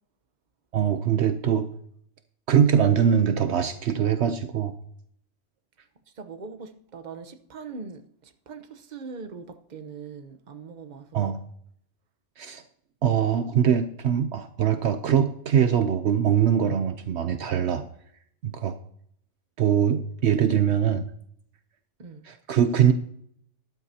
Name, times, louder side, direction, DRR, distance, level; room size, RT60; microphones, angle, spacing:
voice 1, 0.7-1.7 2.5-4.7 11.1-11.4 12.4-12.6 13.0-17.8 18.4-18.7 19.6-21.0 22.3-22.9, right 8 dB, 70° right, 0.9 m, -22 dB
voice 2, 6.2-11.3 22.0-22.2, right 5 dB, 40° right, 1.0 m, -41 dB
13.0 x 12.0 x 2.8 m
omnidirectional pair, 1.2 m